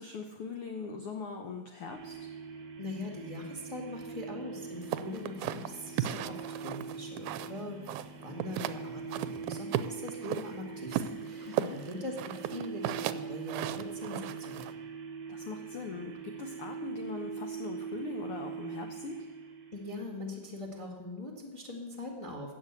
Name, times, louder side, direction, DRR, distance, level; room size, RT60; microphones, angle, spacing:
voice 1, 0.0-2.3 11.5-11.8 15.3-19.3, left 4 dB, 80° left, 4 dB, 1.2 m, -41 dB
sound 1, 1.9-20.2, right 6 dB, 55° right, 1.2 m, -43 dB
voice 2, 2.8-7.8 8.2-14.6 19.7-22.5, left 1 dB, 20° left, 1 dB, 0.8 m, -41 dB
sound 2, 4.9-7.6 7.9-8.8 9.1-10.5 10.9-14.7, right 12 dB, 80° right, 1.9 m, -35 dB
15.0 x 6.3 x 8.1 m, 1.3 s
omnidirectional pair, 3.8 m